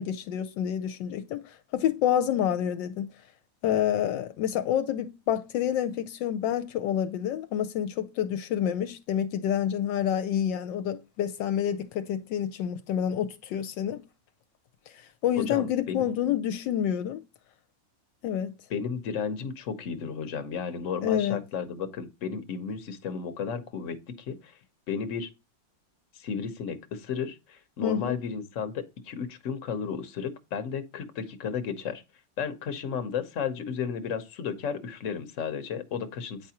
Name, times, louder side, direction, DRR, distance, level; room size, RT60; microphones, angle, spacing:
voice 1, 0.0-3.1 3.6-14.0 15.2-17.2 18.2-18.5 21.0-21.4 27.8-28.3, left 10 dB, 80° left, 1.2 m, -28 dB
voice 2, 15.4-16.1 18.7-24.5 24.9-25.3 26.1-32.0 32.4-36.5, left 6 dB, 50° left, 1.1 m, -33 dB
9.1 x 4.7 x 2.8 m
omnidirectional pair, 2.0 m